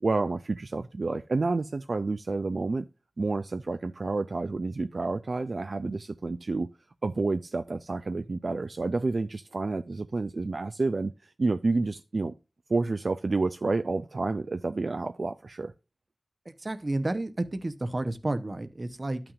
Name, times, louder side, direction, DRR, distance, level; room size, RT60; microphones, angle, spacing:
voice 1, 0.0-2.9 3.2-6.7 7.0-12.3 12.7-15.7, right 3 dB, 70° right, 0.4 m, -29 dB
voice 2, 16.6-19.2, right 2 dB, 45° right, 0.8 m, -31 dB
12.5 x 5.9 x 2.4 m
wide cardioid pair, 75°, 0 cm